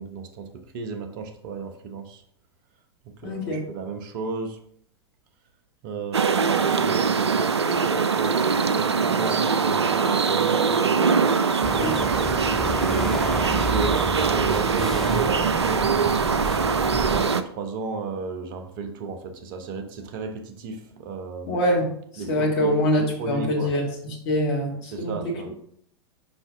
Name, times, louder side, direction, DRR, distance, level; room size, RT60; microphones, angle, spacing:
voice 1, 0.0-2.2 3.2-4.6 5.8-11.9 12.6-13.1 13.5-16.1 17.0-21.5 22.2-22.7 23.2-23.7 24.9-25.5, right 4 dB, 50° right, 6 dB, 1.0 m, -34 dB
voice 2, 3.2-3.7 11.7-12.0 21.5-25.5, equal, 50° left, -1 dB, 1.8 m, -25 dB
sound 1, 6.1-17.4, right 5 dB, 80° right, 0.4 m, -22 dB
sound 2, 11.6-17.3, equal, 5° left, 0.5 m, -31 dB
5.5 x 5.5 x 3.5 m, 0.66 s
figure-of-eight pair, 90°, 14 cm